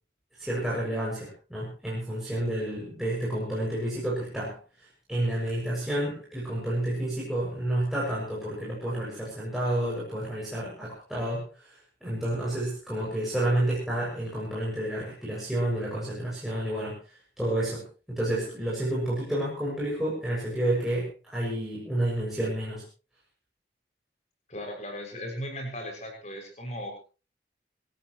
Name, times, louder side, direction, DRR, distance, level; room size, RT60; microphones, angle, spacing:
voice 1, 0.4-4.6 5.1-17.0 17.4-22.8, right 1 dB, ahead, -7 dB, 6.8 m, -30 dB
voice 2, 24.5-27.0, equal, 40° left, 2 dB, 6.6 m, -37 dB
27.5 x 14.5 x 3.1 m, 0.34 s
head